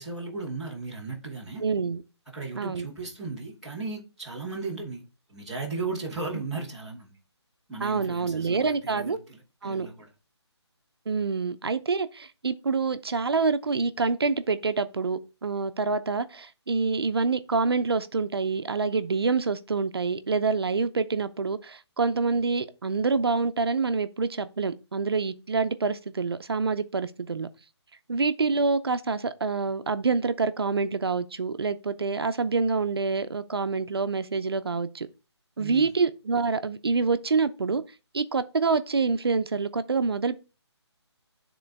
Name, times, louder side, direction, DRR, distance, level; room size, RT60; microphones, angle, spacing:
voice 1, 0.0-1.6 2.3-5.0 5.3-7.1 7.7-10.0 35.6-35.9, right 3 dB, ahead, 0.6 m, -36 dB
voice 2, 1.6-2.0 2.6-2.9 7.8-9.2 9.6-9.9 11.1-27.5 28.1-35.1 35.6-37.8 38.1-40.4, right 4 dB, 60° right, 0.6 m, -26 dB
9.4 x 3.8 x 3.4 m
hypercardioid pair, 175°, 15 cm